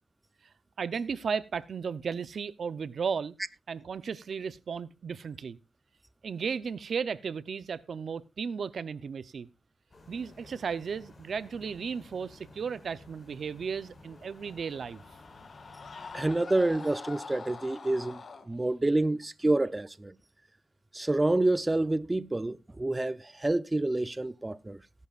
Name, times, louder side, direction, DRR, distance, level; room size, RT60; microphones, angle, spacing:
voice 1, 0.8-3.3 3.7-5.6 6.2-9.5 10.1-15.0, right 6 dB, 65° right, 0.6 m, -35 dB
sound 1, 9.9-16.2, left 2 dB, 35° left, 5.0 m, -54 dB
Screaming, 14.0-18.5, left 4 dB, 55° left, 1.7 m, -45 dB
voice 2, 16.1-18.2 18.5-20.1 20.9-24.8, right 2 dB, 20° right, 0.6 m, -28 dB
18.0 x 11.0 x 2.4 m
cardioid pair, 85°, 0 cm